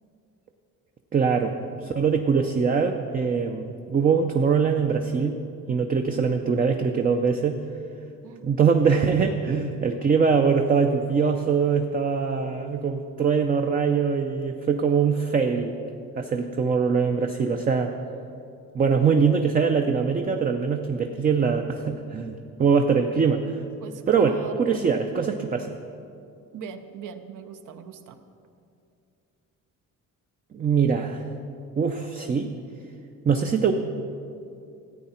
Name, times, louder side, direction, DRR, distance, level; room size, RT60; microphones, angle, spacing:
voice 1, 1.1-5.4 5.7-7.6 8.4-15.7 16.2-17.9 18.7-23.6 24.1-25.7 30.5-31.3 31.8-32.5 33.2-33.7, right 5 dB, 25° right, 5 dB, 0.4 m, -23 dB
voice 2, 23.8-24.9 26.5-28.2, right 6 dB, 65° right, 9 dB, 0.8 m, -40 dB
14.0 x 8.8 x 4.3 m, 2.5 s
cardioid pair, 140°, 34 cm